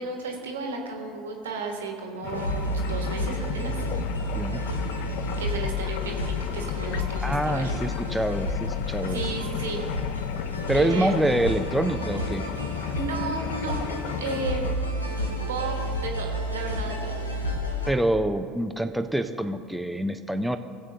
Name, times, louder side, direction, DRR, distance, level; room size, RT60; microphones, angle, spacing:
voice 1, 0.0-3.7 5.4-7.7 9.1-9.8 10.7-11.1 12.9-14.8 15.5-17.2, right 3 dB, 75° right, 2 dB, 1.3 m, -33 dB
sound 1, 2.2-14.7, left 11 dB, 60° left, 0.4 m, -35 dB
sound 2, 2.3-17.9, left 1 dB, 85° left, 0.8 m, -31 dB
voice 2, 7.2-9.2 10.7-12.5 17.9-20.6, right 1 dB, ahead, 6 dB, 0.5 m, -26 dB
19.5 x 7.5 x 2.8 m, 2.3 s
figure-of-eight pair, 65°, 0 cm